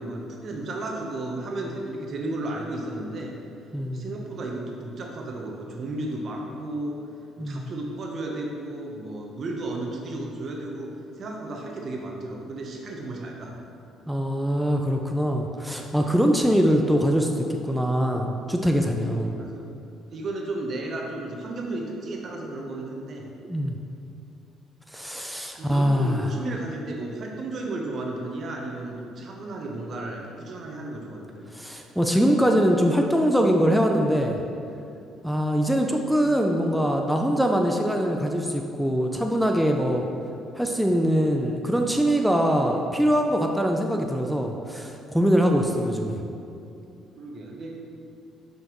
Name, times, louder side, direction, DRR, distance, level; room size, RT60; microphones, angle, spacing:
voice 1, 0.0-3.3 3.9-7.0 7.4-10.9 11.2-13.6 19.2-19.6 20.1-23.3 25.6-31.5 45.8-46.4 47.2-47.8, right 2 dB, 55° right, 0 dB, 0.9 m, -34 dB
voice 2, 3.7-4.1 7.4-7.7 14.1-19.4 23.5-23.7 24.9-26.3 31.5-34.4 35.2-40.0 40.6-46.2, equal, ahead, 2 dB, 0.5 m, -23 dB
6.1 x 5.2 x 3.1 m, 2.7 s
supercardioid pair, 60°, 0 cm